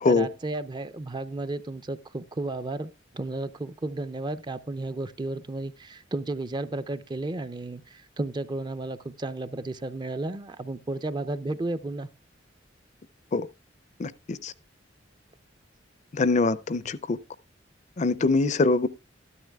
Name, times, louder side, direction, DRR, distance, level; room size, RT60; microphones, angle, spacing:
voice 1, 0.1-12.1, right 2 dB, 25° right, 0.5 m, -33 dB
voice 2, 14.0-14.5 16.1-17.2 18.0-18.9, left 3 dB, 40° left, 0.5 m, -23 dB
13.5 x 12.5 x 2.3 m
head